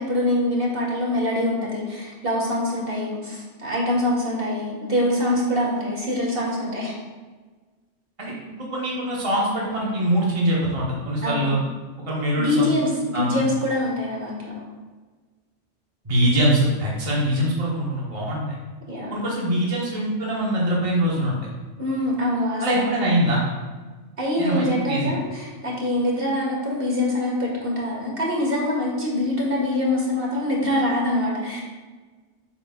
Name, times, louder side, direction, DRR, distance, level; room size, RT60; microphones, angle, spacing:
voice 1, 0.0-7.0 11.2-11.5 12.4-14.5 18.9-19.2 21.8-22.9 24.2-31.6, left 1 dB, 50° right, -3 dB, 1.8 m, -24 dB
voice 2, 8.2-11.6 12.1-12.7 13.1-13.3 16.0-18.4 19.1-21.4 22.6-23.4 24.4-25.1, right 1 dB, 30° right, -6 dB, 1.3 m, -23 dB
7.6 x 3.1 x 5.7 m, 1.3 s
omnidirectional pair, 1.2 m